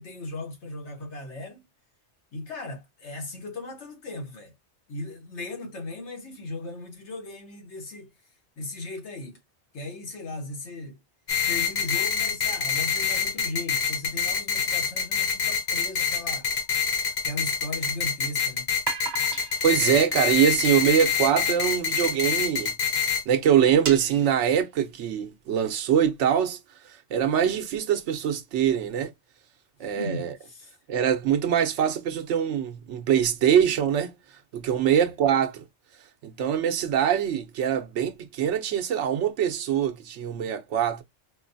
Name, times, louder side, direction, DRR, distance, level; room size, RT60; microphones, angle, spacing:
voice 1, 0.0-1.6 2.3-4.5 4.9-8.1 8.6-9.4 9.7-11.0 11.5-16.5 17.2-18.7 30.0-30.7 34.9-35.1, left 2 dB, 75° left, 1.4 m, -37 dB
sound 1, 11.3-23.2, left 7 dB, 50° left, 0.6 m, -26 dB
sound 2, 15.7-17.2 18.7-21.5 22.2-22.3 22.6-22.7 23.1-23.2 23.6-25.0, right 6 dB, 45° right, 0.7 m, -38 dB
voice 2, 19.6-22.7 23.3-26.6 26.9-29.1 29.8-30.3 30.9-34.1 34.5-35.6 36.2-41.0, right 9 dB, 80° right, 1.0 m, -23 dB
4.4 x 2.2 x 2.6 m
omnidirectional pair, 1.2 m